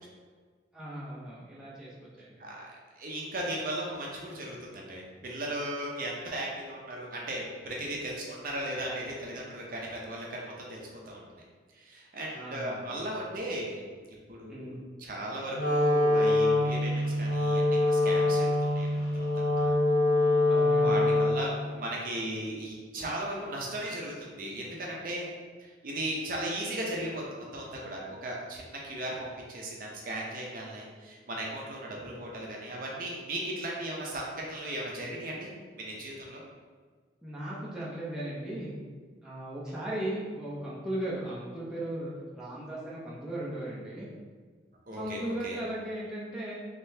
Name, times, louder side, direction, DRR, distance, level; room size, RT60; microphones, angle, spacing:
voice 1, 0.7-2.4 12.3-12.9 14.5-14.8 20.5-21.2 37.2-38.7 39.2-44.1 44.9-46.5, right 1 dB, 5° right, -8 dB, 0.6 m, -37 dB
voice 2, 3.0-11.2 11.7-13.8 14.3-19.7 20.8-25.3 25.6-27.2 27.5-35.5 35.8-36.4 44.9-45.6, right 1 dB, 50° right, -3 dB, 0.6 m, -37 dB
Wind instrument woodwind instrument, 15.5-21.6, left 2 dB, 55° left, 0.5 m, -25 dB
3.7 x 3.1 x 2.7 m, 1.5 s
head